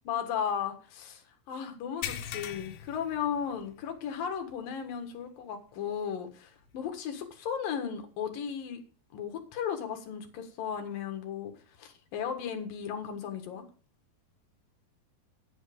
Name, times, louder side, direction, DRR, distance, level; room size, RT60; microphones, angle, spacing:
voice 1, 0.1-8.8 9.1-11.5 11.8-13.6, left 7 dB, 65° left, 5 dB, 3.2 m, -35 dB
sound 1, 2.0-3.9 4.3-4.5 4.9-5.0 6.7-6.8, left 10 dB, 80° left, 3.1 m, -40 dB
9.3 x 8.8 x 5.2 m, 0.38 s
omnidirectional pair, 4.6 m